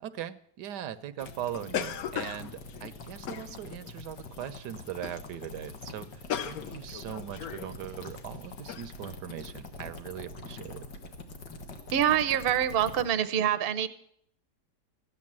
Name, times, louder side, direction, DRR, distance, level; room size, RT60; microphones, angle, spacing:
voice 1, 0.0-10.8, right 10 dB, 80° right, 13 dB, 1.3 m, -40 dB
sound 1, 1.2-13.0, left 3 dB, 85° left, 2.3 m, -44 dB
sound 2, 1.2-3.9 4.4-4.6 5.0-5.3 5.5-5.6 5.9-7.7 8.2-8.3 8.7-8.9, left 9 dB, 65° left, 1.2 m, -37 dB
voice 2, 11.9-13.9, right 10 dB, 50° right, 10 dB, 0.8 m, -25 dB
14.5 x 9.5 x 7.4 m, 0.68 s
omnidirectional pair, 1.8 m